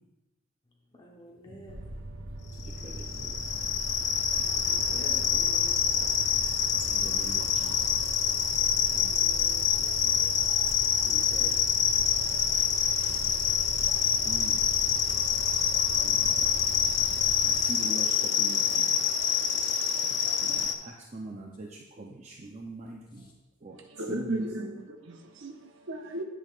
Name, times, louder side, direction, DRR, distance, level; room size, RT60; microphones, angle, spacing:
voice 1, 0.9-1.8 4.7-6.3 8.9-10.1 13.0-13.5 23.2-23.3, left 1 dB, 20° left, -3 dB, 0.9 m, -49 dB
sound 1, 1.7-17.6, right 1 dB, 90° right, 1.1 m, -41 dB
sound 2, 2.6-20.7, left 8 dB, 55° left, 0.5 m, -26 dB
voice 2, 2.6-3.7 6.9-8.1 11.0-11.7 14.2-14.8 16.0-16.5 17.4-19.4 20.4-23.3 23.6-24.6, right 1 dB, 30° right, -1 dB, 0.6 m, -43 dB
voice 3, 23.9-26.2, right 1 dB, 60° right, 3 dB, 0.9 m, -35 dB
10.5 x 6.3 x 2.4 m, 1.1 s
head